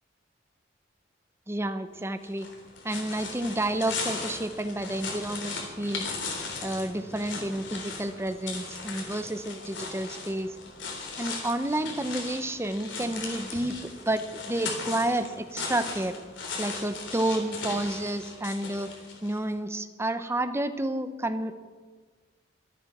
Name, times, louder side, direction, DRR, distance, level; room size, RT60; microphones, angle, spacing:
voice 1, 1.5-2.5 2.8-6.0 6.6-10.6 11.2-16.2 16.6-18.9 19.2-21.5, right 1 dB, 15° right, 10 dB, 0.8 m, -30 dB
sound 1, 2.2-19.4, left 4 dB, 70° left, 3.6 m, -38 dB
24.0 x 8.9 x 6.0 m, 1.5 s
head